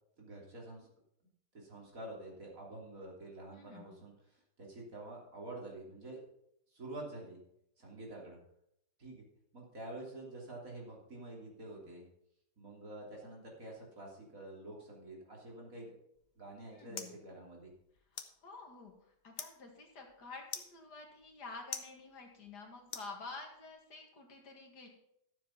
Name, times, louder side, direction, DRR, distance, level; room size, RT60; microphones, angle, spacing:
voice 1, 0.2-0.9 1.5-6.2 6.7-7.4 7.8-8.4 9.0-9.2 9.5-12.0 12.6-16.0 16.4-17.7, right 2 dB, 50° right, -2 dB, 3.6 m, -48 dB
voice 2, 3.5-4.0 16.7-17.2 18.4-18.9 19.2-24.9, left 3 dB, 70° left, 2 dB, 2.6 m, -49 dB
sound 1, 16.1-23.7, left 5 dB, 40° left, 1.1 m, -50 dB
13.0 x 7.4 x 5.9 m, 0.76 s
omnidirectional pair, 1.8 m